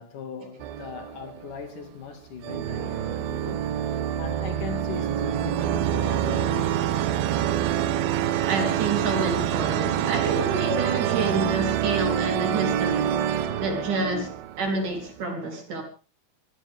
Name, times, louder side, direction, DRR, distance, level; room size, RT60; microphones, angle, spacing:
voice 1, 0.0-6.8, left 5 dB, 60° left, 3.7 m, -39 dB
sound 1, 0.6-1.8 2.4-15.1, right 10 dB, 80° right, 2.8 m, -26 dB
sound 2, 6.0-7.6 7.9-8.8 9.1-10.5 10.8-12.4 12.8-14.3, left 5 dB, 30° left, 1.8 m, -45 dB
voice 2, 8.5-15.8, right 3 dB, 60° right, 5.4 m, -28 dB
24.5 x 16.0 x 3.7 m
omnidirectional pair, 4.2 m